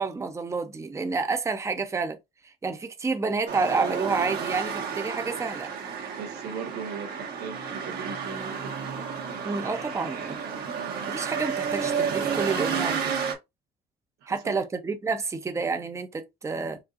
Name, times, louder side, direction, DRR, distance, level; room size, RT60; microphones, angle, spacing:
voice 1, 0.0-2.2 2.6-5.7 9.4-10.4 11.1-13.0 14.3-16.8, right 4 dB, 15° right, 0.7 m, -29 dB
sound 1, 3.5-13.3, right 6 dB, 65° right, 1.5 m, -31 dB
voice 2, 6.2-8.7 14.2-14.6, right 5 dB, 90° right, 1.4 m, -38 dB
4.8 x 2.6 x 2.5 m
cardioid pair, 110°, 17 cm